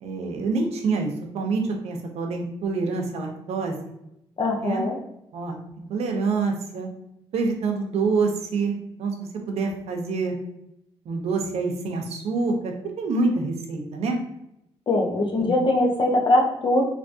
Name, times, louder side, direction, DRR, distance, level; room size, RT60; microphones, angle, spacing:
voice 1, 0.0-3.8 4.6-4.8 5.3-5.6 5.9-6.9 7.3-9.1 9.5-10.4 11.1-14.2 15.4-15.5, right 4 dB, 80° right, 3 dB, 0.7 m, -26 dB
voice 2, 4.4-5.0 14.9-16.8, left 2 dB, 50° left, 0 dB, 0.9 m, -21 dB
3.3 x 3.0 x 2.6 m, 0.82 s
cardioid pair, 110°, 11 cm